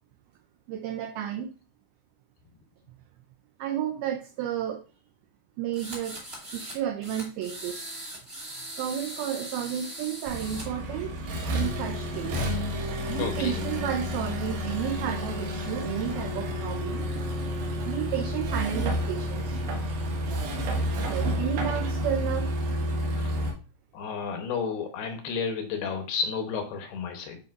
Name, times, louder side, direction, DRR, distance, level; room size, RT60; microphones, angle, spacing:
voice 1, 0.7-1.5 3.6-4.8 5.6-6.2 6.5-7.9 8.8-11.2 11.5-12.5 13.1-17.3 17.9-19.6 21.1-22.5, right 10 dB, 90° right, 5 dB, 2.1 m, -32 dB
sound 1, 5.7-6.8 7.0-10.6, right 1 dB, 25° right, 1.4 m, -40 dB
Accelerating revving vroom, 10.3-23.5, equal, 65° right, 2.9 m, -30 dB
voice 2, 13.1-13.6 23.2-23.3 23.9-27.4, left 6 dB, 75° left, 4 dB, 2.7 m, -32 dB
9.5 x 5.0 x 2.5 m, 0.34 s
omnidirectional pair, 5.1 m